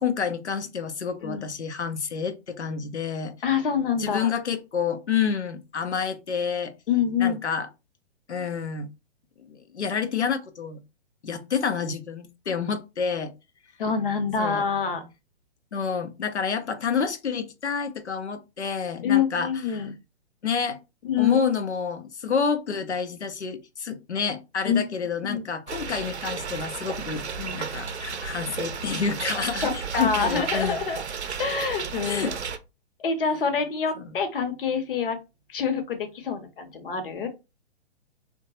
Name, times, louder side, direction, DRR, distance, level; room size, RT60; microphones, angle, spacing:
voice 1, 0.0-3.3 4.0-6.7 7.2-7.7 8.3-8.9 9.5-10.8 11.2-13.3 14.4-14.7 15.7-19.8 20.4-20.8 21.2-27.2 27.6-30.8 32.1-32.3 34.0-34.1, left 6 dB, 85° left, 0.6 m, -29 dB
voice 2, 3.4-4.3 6.9-7.4 13.8-15.0 19.0-19.9 21.0-21.4 24.6-24.8 25.2-25.4 27.1-27.6 29.6-31.0 31.4-32.3 33.0-35.2 35.5-37.3, left 6 dB, 55° left, 0.8 m, -26 dB
sound 1, 25.7-32.6, right 6 dB, 80° right, 0.5 m, -33 dB
2.8 x 2.2 x 2.8 m
figure-of-eight pair, 120°, 33 cm